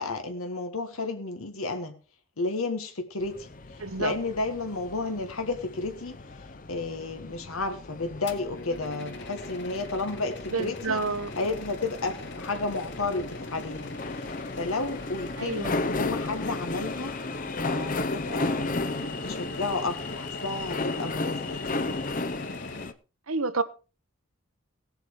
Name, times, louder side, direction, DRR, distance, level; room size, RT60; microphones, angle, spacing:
voice 1, 0.0-1.9 2.4-6.2 6.7-11.0 11.4-14.3 14.6-17.1 17.6-21.8, left 3 dB, 85° left, 1.5 m, -32 dB
sound 1, 3.2-22.9, left 3 dB, 40° left, 0.7 m, -35 dB
voice 2, 3.8-4.1 10.5-11.3 15.4-15.8 23.3-23.6, right 4 dB, 85° right, 1.2 m, -29 dB
sound 2, 8.3-22.9, left 2 dB, 55° left, 1.9 m, -42 dB
17.5 x 8.0 x 4.7 m
head